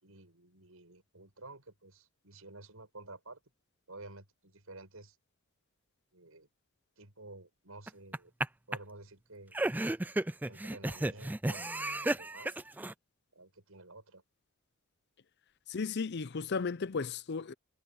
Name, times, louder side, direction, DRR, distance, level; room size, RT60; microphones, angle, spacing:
voice 1, 0.0-3.4 3.9-5.2 6.1-6.5 7.0-8.3 8.7-9.6 10.4-12.6 13.3-14.2, right 2 dB, 75° right, 6.7 m, -52 dB
sound 1, 7.9-8.5 8.7-8.8 9.5-12.9, right 1 dB, 10° right, 0.3 m, -33 dB
voice 2, 15.7-17.5, left 5 dB, 50° left, 0.5 m, -34 dB
head